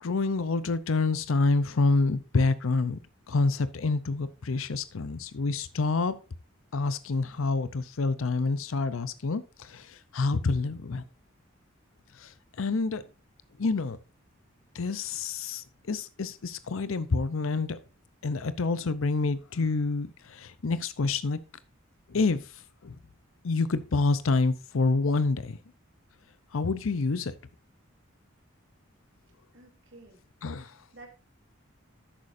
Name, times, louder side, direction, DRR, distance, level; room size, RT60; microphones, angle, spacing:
voice 1, 0.0-3.0 3.3-6.2 6.7-11.0 12.1-13.0 13.6-14.0 14.7-17.8 18.2-21.4 22.1-23.0 23.4-25.6 26.5-27.3 30.4-30.8, left 3 dB, 80° left, 0.6 m, -28 dB
voice 2, 29.5-30.2 30.5-31.1, right 2 dB, 60° right, 2.9 m, -52 dB
11.5 x 8.4 x 2.6 m
head